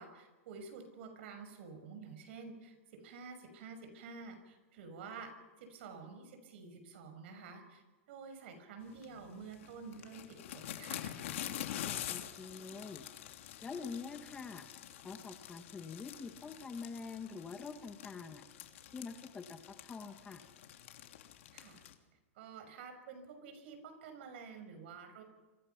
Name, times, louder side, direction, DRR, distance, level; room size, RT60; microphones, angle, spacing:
voice 1, 0.0-5.3 5.6-11.1 21.5-21.8 22.4-25.2, right 5 dB, 55° right, 7 dB, 6.3 m, -50 dB
sound 1, 8.9-21.9, left 11 dB, 70° left, 3.1 m, -46 dB
voice 2, 11.7-13.0 13.6-14.6 15.0-18.4 18.9-20.4, left 5 dB, 10° left, 7 dB, 1.3 m, -46 dB
28.0 x 25.5 x 5.9 m, 1.2 s
supercardioid pair, 165°, 7 cm